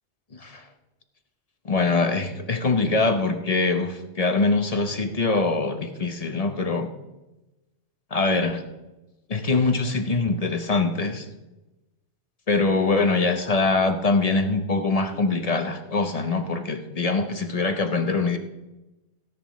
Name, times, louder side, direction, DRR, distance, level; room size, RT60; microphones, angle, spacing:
voice 1, 0.3-0.7 1.6-6.9 8.1-8.6 9.3-11.3 12.5-18.4, left 3 dB, 35° left, 7 dB, 0.9 m, -23 dB
16.5 x 10.5 x 3.2 m, 1.0 s
omnidirectional pair, 1.2 m